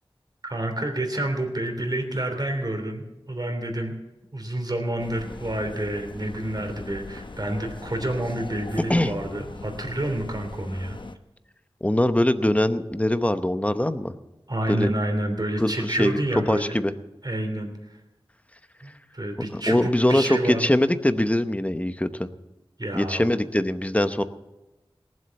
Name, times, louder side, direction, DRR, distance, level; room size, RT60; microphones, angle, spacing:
voice 1, 0.4-3.9 4.3-11.0 14.5-16.8 17.2-18.0 18.8-20.6 22.8-23.3, right 1 dB, 45° right, 4 dB, 3.1 m, -29 dB
sound 1, 5.0-11.2, left 3 dB, 60° left, 0.8 m, -40 dB
voice 2, 11.8-14.1 14.7-14.9 15.6-16.2 16.5-16.9 19.5-22.3 22.9-24.2, left 1 dB, 15° left, 10 dB, 0.9 m, -22 dB
19.0 x 7.8 x 7.1 m, 1.0 s
wide cardioid pair, 50°, 10 cm